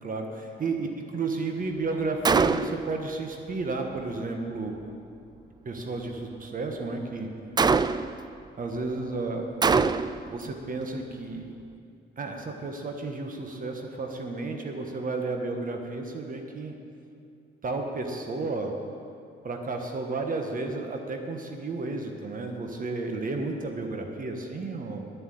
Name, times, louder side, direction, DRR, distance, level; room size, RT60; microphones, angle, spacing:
voice 1, 0.0-4.8 5.6-7.3 8.6-9.5 10.3-11.5 12.2-16.7 17.6-18.7 19.4-25.1, right 3 dB, 45° right, 3 dB, 1.3 m, -32 dB
Gunshot gunfire, 2.2-2.9 7.6-8.2 9.6-10.3, right 5 dB, 20° right, 0.3 m, -23 dB
11.0 x 7.6 x 9.0 m, 2.5 s
cardioid pair, 90°, 20 cm